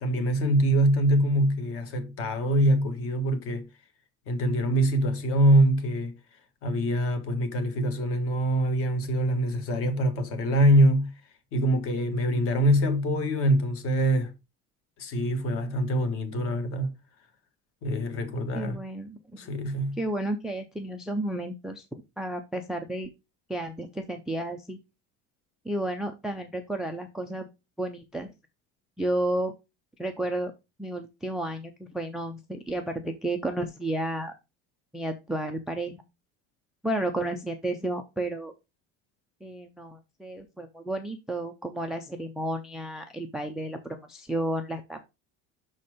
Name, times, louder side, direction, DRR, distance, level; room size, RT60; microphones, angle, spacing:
voice 1, 0.0-3.7 4.3-6.1 6.6-11.1 11.5-14.3 15.0-16.9 17.8-18.8 19.4-20.0, right 1 dB, 45° left, 1.5 m, -24 dB
voice 2, 18.5-19.2 20.0-23.1 23.5-24.8 25.6-27.5 27.8-28.3 29.0-29.5 30.0-30.5 30.8-34.3 34.9-36.0 36.8-38.5 39.4-45.0, right 1 dB, ahead, 0.3 m, -32 dB
6.1 x 4.3 x 4.8 m
cardioid pair, 175°, 31 cm